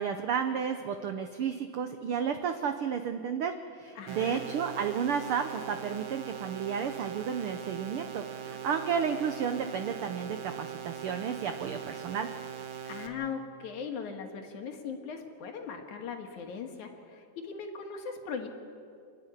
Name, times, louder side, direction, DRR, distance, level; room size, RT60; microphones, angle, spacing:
voice 1, 0.0-12.3, right 7 dB, 80° right, 8 dB, 1.2 m, -32 dB
voice 2, 4.0-4.4 12.8-18.5, left 6 dB, 70° left, 4 dB, 3.2 m, -39 dB
sound 1, 4.1-13.1, right 8 dB, 55° right, 1.7 m, -41 dB
28.5 x 11.0 x 10.0 m, 2.4 s
omnidirectional pair, 3.6 m